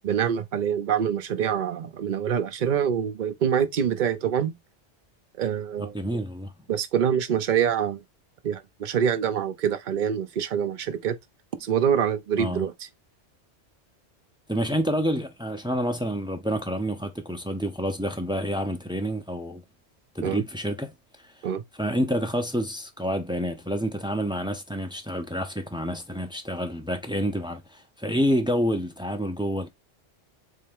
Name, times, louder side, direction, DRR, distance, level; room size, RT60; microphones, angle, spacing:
voice 1, 0.0-4.5 5.4-6.0 6.7-8.0 8.4-11.2 11.6-12.7 20.2-20.4 21.4-21.6, right 8 dB, 50° right, 0.7 m, -25 dB
voice 2, 5.8-6.5 12.4-12.6 14.5-19.6 20.1-20.9 21.2-21.3 21.8-29.7, equal, 10° right, 0.3 m, -28 dB
3.7 x 3.3 x 3.5 m
omnidirectional pair, 1.2 m